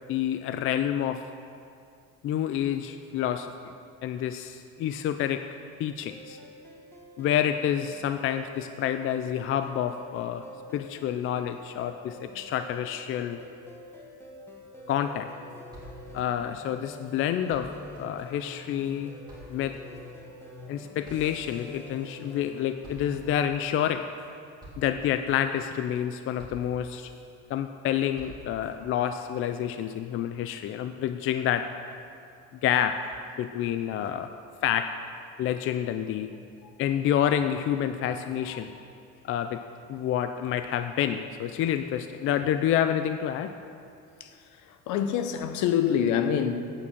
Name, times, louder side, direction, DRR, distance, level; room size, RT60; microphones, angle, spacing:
voice 1, 0.1-1.3 2.2-3.7 4.0-5.4 5.8-6.4 7.2-10.4 10.7-13.4 14.9-15.3 16.1-17.7 18.0-19.1 19.5-19.8 20.7-24.0 24.8-27.1 27.5-31.7 32.6-34.3 34.6-34.9 35.4-36.3 36.8-38.7 39.2-39.6 39.9-43.5, left 10 dB, 40° left, 0.4 m, -28 dB
sound 1, 6.1-23.4, left 1 dB, 5° left, 1.5 m, -46 dB
sound 2, 14.8-14.9 15.2-15.3 15.5-17.2 17.5-22.5 22.8-23.5 24.0-24.3 24.6-25.1 25.5-26.0 26.4-27.3 27.7-28.7, equal, 15° right, 3.1 m, -50 dB
voice 2, 44.2-46.6, left 8 dB, 70° left, 0.9 m, -26 dB
8.9 x 8.3 x 7.2 m
cardioid pair, 145°, 31 cm